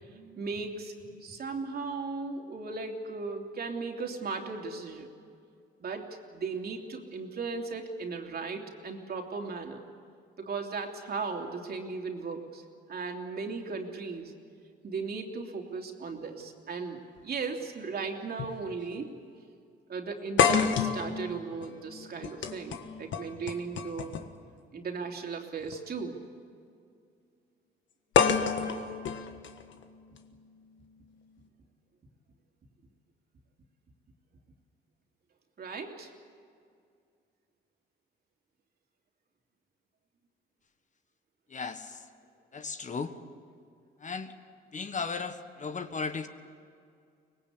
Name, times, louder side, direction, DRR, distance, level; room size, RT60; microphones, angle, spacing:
voice 1, 0.0-5.1 5.8-6.1 6.3-9.9 10.4-12.6 12.9-14.3 14.8-19.1 19.9-24.1 24.7-26.2 35.6-36.1, right 4 dB, 50° right, 2 dB, 3.1 m, -36 dB
sound 1, 17.2-17.3 18.4-18.6 18.9-19.0 20.4-24.4 25.6-25.8 28.1-30.2, left 7 dB, 70° left, 1.6 m, -29 dB
voice 2, 41.5-42.0 42.5-43.1 44.0-44.3 44.7-46.3, left 5 dB, 40° left, 9 dB, 1.4 m, -35 dB
24.0 x 20.0 x 8.4 m, 2.3 s
cardioid pair, 90°, 20 cm